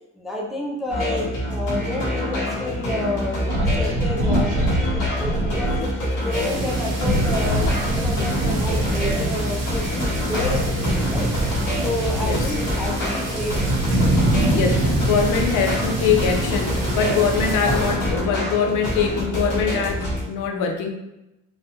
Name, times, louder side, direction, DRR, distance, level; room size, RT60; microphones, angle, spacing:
voice 1, 0.2-3.5 3.8-5.9 6.2-11.3 11.8-13.8, left 2 dB, ahead, -2 dB, 0.3 m, -30 dB
sound 1, 0.9-20.2, left 1 dB, 75° left, 1.4 m, -26 dB
sound 2, 3.5-5.8 7.0-9.3 10.3-12.6 13.2-15.5, right 1 dB, 80° right, 0.9 m, -25 dB
voice 2, 4.8-5.3 10.3-10.4 12.2-12.5 14.5-20.9, left 6 dB, 90° left, 3 dB, 0.6 m, -23 dB
sound 3, 6.3-17.9, right 1 dB, 50° right, 0.9 m, -26 dB
4.0 x 2.2 x 2.8 m, 0.93 s
cardioid pair, 160°, 30 cm